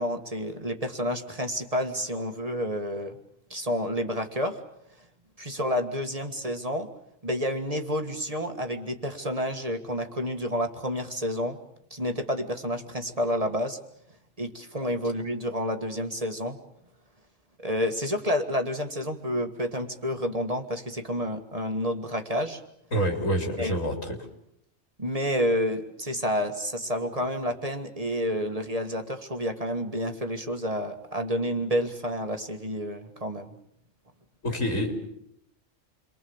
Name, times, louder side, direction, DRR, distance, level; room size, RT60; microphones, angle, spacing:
voice 1, 0.0-3.2 3.5-4.6 5.4-6.9 7.2-11.6 11.9-13.8 14.4-16.6 17.6-22.6 23.6-23.7 25.0-33.5, equal, 30° right, 6 dB, 1.9 m, -29 dB
voice 2, 22.9-23.9 34.4-35.1, equal, 85° left, 3 dB, 4.1 m, -27 dB
29.0 x 23.5 x 7.2 m, 0.74 s
omnidirectional pair, 1.3 m